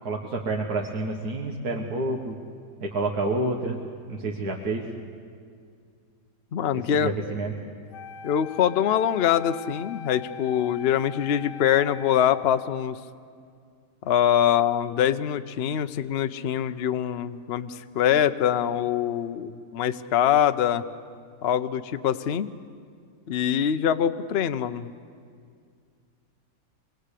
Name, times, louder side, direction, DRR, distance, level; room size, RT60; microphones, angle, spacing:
voice 1, 0.0-2.4 2.8-3.8 4.1-4.8 6.7-7.5, right 2 dB, 65° right, 0 dB, 2.0 m, -29 dB
voice 2, 6.5-7.1 8.2-13.0 14.0-20.8 21.4-22.5 23.3-24.9, left 9 dB, 50° left, 10 dB, 0.8 m, -24 dB
Wind instrument woodwind instrument, 7.9-13.0, left 8 dB, 85° left, 1.6 m, -42 dB
26.0 x 20.5 x 8.3 m, 2.2 s
omnidirectional pair, 1.8 m